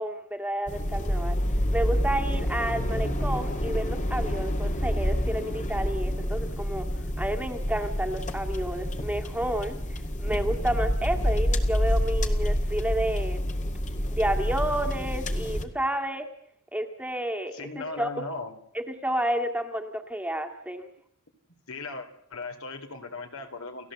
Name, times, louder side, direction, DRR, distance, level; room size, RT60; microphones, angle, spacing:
voice 1, 0.0-1.4 1.7-6.9 7.2-13.4 14.1-16.3 16.7-18.1 18.7-20.9, right 1 dB, 5° right, 4 dB, 1.9 m, -30 dB
sound 1, 0.7-15.6, equal, 35° left, 2.0 m, -28 dB
voice 2, 17.5-18.5 21.5-23.9, left 3 dB, 70° left, 5 dB, 3.5 m, -38 dB
29.5 x 16.0 x 7.8 m, 0.69 s
head